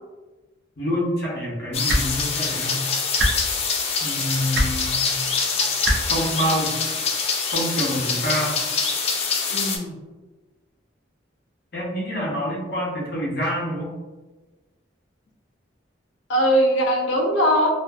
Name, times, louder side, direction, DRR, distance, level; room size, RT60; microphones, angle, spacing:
voice 1, 0.8-2.8 4.0-5.1 6.1-6.7 7.5-8.6 11.7-13.9, equal, 55° left, -4 dB, 0.8 m, -26 dB
sound 1, 1.7-9.8, left 5 dB, 35° left, 0.3 m, -25 dB
sound 2, 1.9-2.0 3.2-3.3 4.5-4.7 5.8-6.0 7.2-7.3, right 1 dB, 60° right, 0.5 m, -20 dB
voice 2, 9.5-10.0 16.3-17.7, equal, 85° left, 1 dB, 0.5 m, -20 dB
2.5 x 2.5 x 2.4 m, 1.2 s
head